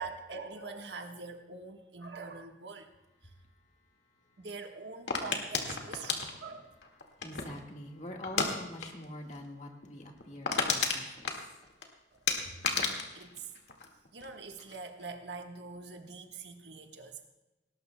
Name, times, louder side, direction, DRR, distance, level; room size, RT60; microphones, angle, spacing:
voice 1, 0.0-2.9 3.2-3.3 4.4-6.7 12.7-13.5 14.1-17.3, right 4 dB, 70° right, 4 dB, 1.4 m, -44 dB
sound 1, 5.1-7.6 8.2-8.5 8.8-9.1 9.3-9.4 9.8-9.9 10.2-11.9 12.3-14.3 14.6-15.0, left 5 dB, 75° left, 1.9 m, -32 dB
voice 2, 7.2-11.3 12.4-12.5, left 1 dB, 40° left, 1 dB, 1.7 m, -45 dB
19.0 x 18.5 x 2.3 m, 1.0 s
head